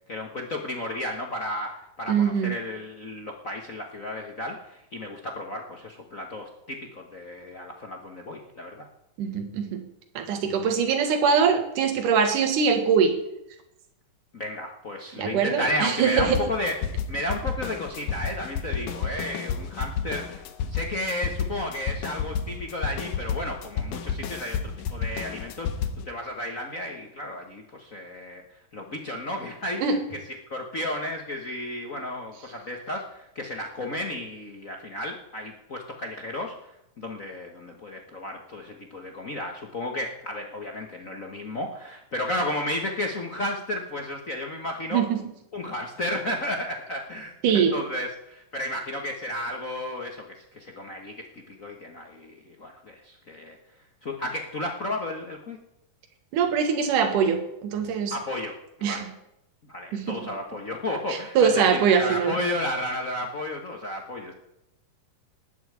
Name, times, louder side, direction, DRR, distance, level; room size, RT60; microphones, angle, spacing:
voice 1, 0.1-8.8 14.3-28.4 28.7-30.2 30.5-36.7 37.0-45.0 45.5-53.6 54.0-55.6 58.1-58.5 58.8-59.1 59.7-64.3, left 1 dB, 65° left, 2 dB, 0.7 m, -33 dB
voice 2, 2.1-2.6 9.2-9.8 10.1-13.2 15.2-16.4 29.8-30.0 44.9-45.2 47.4-47.8 56.3-58.1 58.8-59.1 59.9-60.2 61.3-62.3, right 6 dB, 75° right, 5 dB, 3.2 m, -22 dB
sound 1, 16.2-26.0, left 7 dB, 85° left, 2.7 m, -31 dB
19.0 x 7.2 x 8.6 m, 0.84 s
omnidirectional pair, 3.8 m